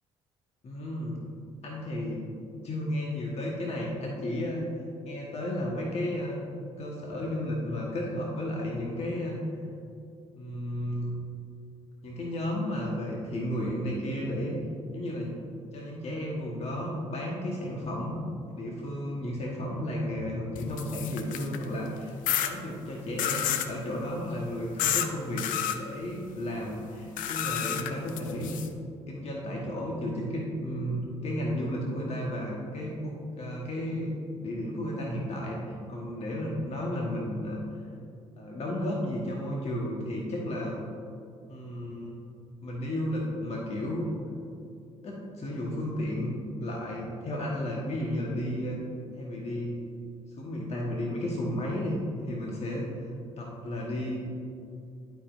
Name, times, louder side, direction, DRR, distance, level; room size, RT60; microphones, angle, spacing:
voice 1, 0.6-1.2 1.6-2.2 2.6-4.6 5.0-6.4 6.8-9.4 10.4-11.1 12.0-14.6 14.9-15.4 15.7-18.2 18.5-22.2 22.4-25.5 25.7-28.5 29.1-34.1 34.4-37.6 38.4-40.8 41.5-42.2 42.6-44.1 45.0-46.3 46.6-48.8 49.2-49.8 50.4-53.1 53.4-54.2, left 1 dB, 45° left, -2 dB, 1.3 m, -33 dB
sound 1, 20.6-21.6 22.3-22.5 23.2-23.7 24.8-25.1 25.4-25.8 27.2-28.7, left 10 dB, 65° left, 0.5 m, -30 dB
11.5 x 5.2 x 2.6 m, 2.5 s
hypercardioid pair, 55°, 15 cm